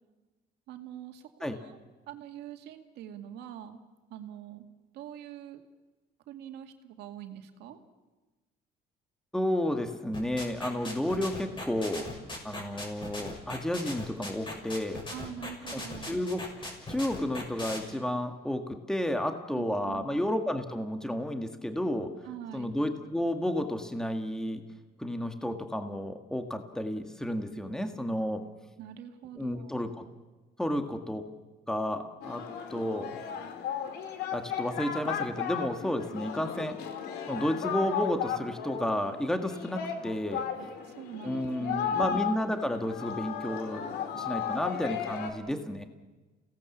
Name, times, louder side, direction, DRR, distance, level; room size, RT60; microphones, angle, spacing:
voice 1, 0.7-1.8 2.1-3.8 4.1-4.7 4.9-5.6 6.3-7.8 15.1-16.2 19.5-20.2 22.2-22.8 28.8-29.9 40.6-42.1, right 10 dB, 80° right, 6 dB, 2.2 m, -44 dB
voice 2, 9.3-15.0 15.7-15.8 16.1-16.4 16.9-22.1 22.5-24.6 25.0-28.4 29.4-30.1 30.6-31.2 31.7-32.4 32.7-33.2 34.3-36.8 37.3-40.4 41.2-45.8, left 1 dB, 5° left, 6 dB, 1.8 m, -32 dB
sound 1, 10.1-17.8, left 2 dB, 30° left, 6.5 m, -38 dB
Singing, 32.2-45.3, left 8 dB, 80° left, 2.5 m, -35 dB
29.5 x 17.5 x 7.3 m, 1.2 s
cardioid pair, 110°, 17 cm